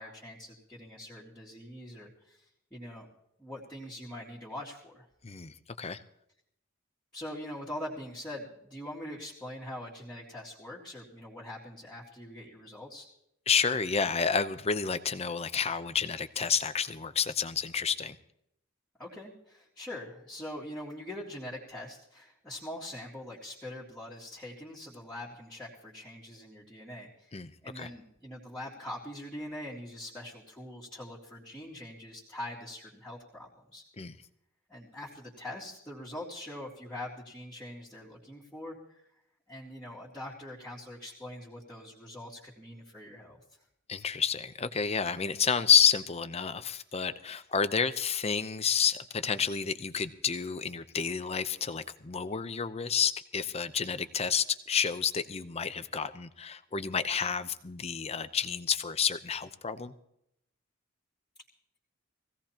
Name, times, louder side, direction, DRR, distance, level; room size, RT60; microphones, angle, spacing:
voice 1, 0.0-3.1 3.4-5.1 7.1-13.1 19.0-27.3 27.6-33.8 34.7-38.8 39.5-43.4, left 1 dB, 5° left, -10 dB, 2.4 m, -43 dB
voice 2, 5.2-6.0 13.5-18.2 27.3-27.5 27.8-27.9 34.0-34.2 43.9-59.9, left 7 dB, 30° left, 12 dB, 0.7 m, -30 dB
23.5 x 16.5 x 2.9 m, 0.77 s
head